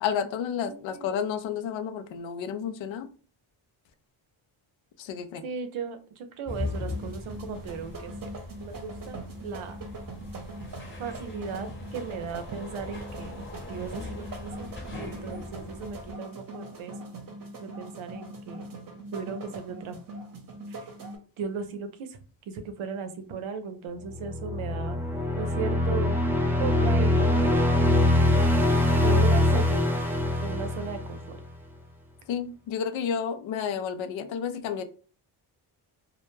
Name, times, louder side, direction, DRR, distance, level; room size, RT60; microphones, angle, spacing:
voice 1, 0.0-3.1 5.0-5.4 32.3-34.8, left 7 dB, 70° left, 0.5 m, -31 dB
voice 2, 0.7-1.1 5.4-8.3 8.6-9.8 11.0-16.9 17.6-18.7 19.1-20.0 20.7-20.8 21.4-22.2 22.5-25.0 25.3-26.2 26.6-27.7 29.0-29.9 30.4-31.4, right 5 dB, 75° right, 0.7 m, -36 dB
sound 1, 6.5-16.1, left 2 dB, 25° left, 0.8 m, -40 dB
sound 2, 6.6-21.2, right 2 dB, 40° right, 0.8 m, -42 dB
sound 3, 24.1-31.4, left 1 dB, 5° right, 0.3 m, -23 dB
2.1 x 2.1 x 3.0 m
cardioid pair, 80°, 50 cm